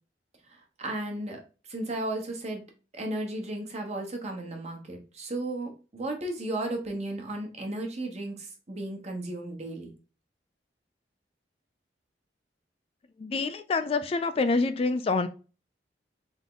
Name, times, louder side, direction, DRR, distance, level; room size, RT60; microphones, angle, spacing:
voice 1, 0.5-1.4 1.7-2.6 2.9-9.9, right 1 dB, 40° right, 2 dB, 1.1 m, -34 dB
voice 2, 13.2-15.3, left 3 dB, 35° left, 10 dB, 0.3 m, -26 dB
3.7 x 3.5 x 3.7 m, 0.34 s
head